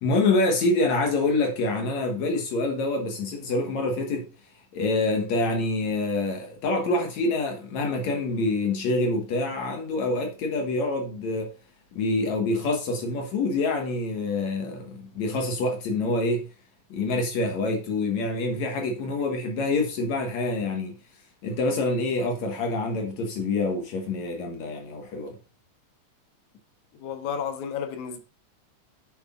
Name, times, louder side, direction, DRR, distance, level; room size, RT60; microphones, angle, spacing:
voice 1, 0.0-4.3 4.7-11.5 11.9-16.5 16.9-21.0 21.4-25.4, left 2 dB, 70° left, 2.5 m, -26 dB
voice 2, 26.9-28.2, left 7 dB, 85° left, 2.5 m, -32 dB
8.7 x 6.7 x 2.5 m
omnidirectional pair, 3.3 m